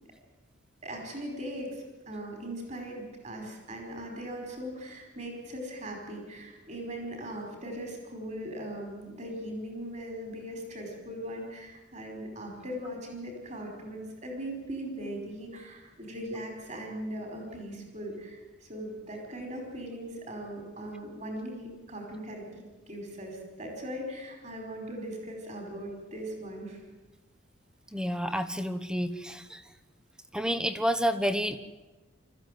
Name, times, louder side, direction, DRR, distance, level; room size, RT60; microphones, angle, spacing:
voice 1, 0.8-26.8, equal, 35° right, 2 dB, 5.0 m, -39 dB
voice 2, 27.9-29.6 30.3-31.6, equal, 5° right, 11 dB, 1.0 m, -29 dB
24.5 x 14.5 x 9.3 m, 1.2 s
head